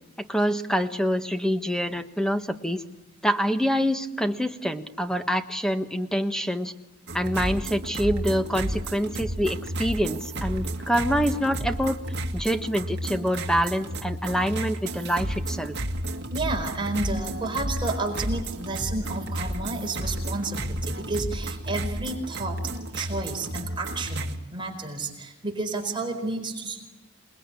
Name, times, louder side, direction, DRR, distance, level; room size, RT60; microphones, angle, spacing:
voice 1, 0.3-2.8 3.2-6.7 7.1-12.0 12.3-15.7, equal, 5° left, 7 dB, 1.4 m, -26 dB
sound 1, 7.1-24.4, right 1 dB, 50° right, 2.1 m, -32 dB
voice 2, 16.3-22.6 22.9-26.8, right 2 dB, 20° right, 2 dB, 4.6 m, -31 dB
28.0 x 20.5 x 9.9 m, 0.99 s
head